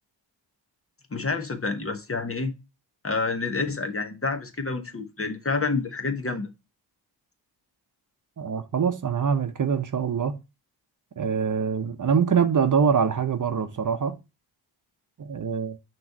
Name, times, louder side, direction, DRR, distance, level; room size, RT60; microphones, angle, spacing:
voice 1, 1.1-2.5 3.0-6.5, left 4 dB, 30° left, 1.1 m, -28 dB
voice 2, 8.4-10.4 11.2-14.2 15.2-15.8, right 6 dB, 45° right, 0.8 m, -24 dB
6.0 x 3.1 x 5.3 m
cardioid pair, 70°, 45 cm